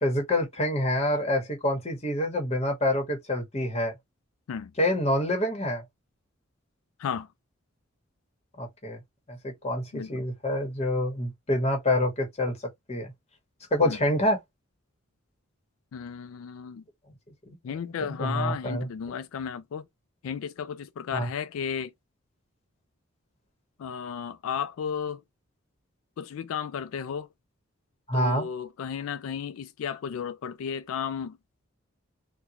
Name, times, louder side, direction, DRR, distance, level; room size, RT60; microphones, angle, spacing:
voice 1, 0.0-3.9 4.8-5.8 8.6-9.0 9.3-12.6 12.9-13.1 13.7-14.4 17.5-17.6 17.9-18.9 21.1-21.3 28.1-28.5, left 1 dB, 30° left, 1.0 m, -27 dB
voice 2, 15.9-16.8 17.6-19.8 20.2-21.9 23.8-25.2 26.2-27.3 28.1-31.4, left 7 dB, 85° left, 0.3 m, -34 dB
3.6 x 2.2 x 2.8 m
head